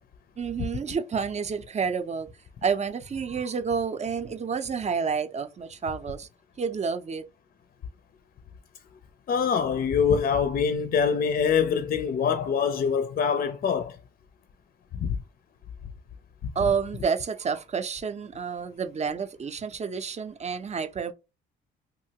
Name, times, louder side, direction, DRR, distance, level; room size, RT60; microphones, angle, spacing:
voice 1, 0.4-2.3 2.6-6.3 6.6-7.3 16.6-21.1, right 6 dB, 35° right, 0.5 m, -29 dB
voice 2, 9.3-14.0 14.9-15.2 16.4-16.5, left 6 dB, 45° left, 0.5 m, -24 dB
2.9 x 2.3 x 2.8 m
cardioid pair, 90°, 20 cm